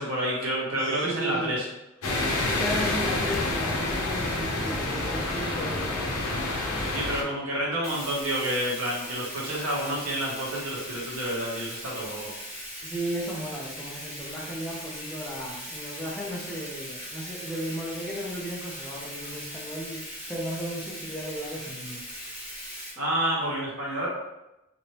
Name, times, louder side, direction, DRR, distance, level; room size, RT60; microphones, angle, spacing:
voice 1, 0.0-1.6 6.9-12.3 23.0-24.1, right 1 dB, 85° right, -5 dB, 1.3 m, -29 dB
voice 2, 0.7-1.6 2.6-6.6 12.8-22.0, equal, 5° left, -4 dB, 0.5 m, -35 dB
sound 1, 2.0-7.2, left 2 dB, 80° left, 0.7 m, -28 dB
Bathtub (filling or washing), 7.8-22.9, equal, 35° right, 1.3 m, -39 dB
3.1 x 2.9 x 2.9 m, 0.94 s
head